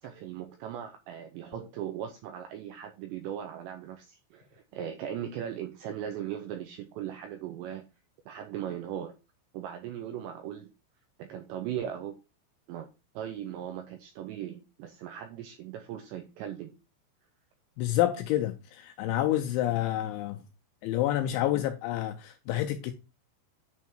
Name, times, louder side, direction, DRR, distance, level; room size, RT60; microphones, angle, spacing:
voice 1, 0.0-7.9 8.3-9.1 9.5-10.7 11.2-12.2 12.7-12.9 13.1-16.8 21.2-21.6 22.5-22.6, right 10 dB, 85° right, 2.5 m, -38 dB
voice 2, 17.8-20.4 20.8-22.9, left 14 dB, 85° left, 2.7 m, -28 dB
9.4 x 3.5 x 4.4 m
omnidirectional pair, 5.9 m